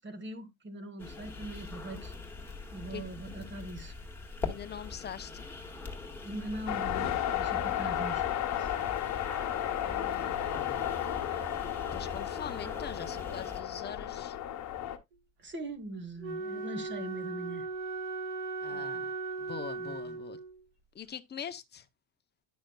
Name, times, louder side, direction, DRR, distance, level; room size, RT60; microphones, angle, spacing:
voice 1, 0.0-2.1 2.7-4.0 6.2-8.8 15.4-17.7 18.7-19.0 19.8-20.1, right 2 dB, 25° right, 1.4 m, -42 dB
sound 1, 1.0-13.6, left 4 dB, 5° left, 1.7 m, -43 dB
voice 2, 4.4-5.5 9.8-10.9 11.2-11.5 11.9-14.4 18.6-19.1 19.4-20.4 20.9-21.9, left 8 dB, 25° left, 0.7 m, -43 dB
sound 2, 6.7-15.0, left 11 dB, 40° left, 1.2 m, -33 dB
Wind instrument woodwind instrument, 16.2-20.6, right 3 dB, 60° right, 2.0 m, -37 dB
10.5 x 6.3 x 2.3 m
cardioid pair, 130°, 44 cm